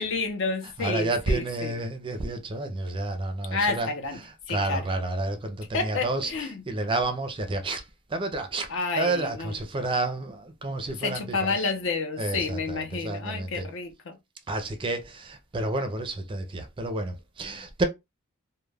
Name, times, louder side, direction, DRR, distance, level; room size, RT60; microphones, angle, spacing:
voice 1, 0.0-1.7 3.5-4.2 4.5-4.8 5.7-6.6 8.7-9.5 10.9-14.2, left 3 dB, 65° left, 0.6 m, -30 dB
voice 2, 0.8-11.7 12.2-13.7 14.5-17.8, right 2 dB, 25° right, 0.4 m, -30 dB
2.3 x 2.1 x 3.3 m
head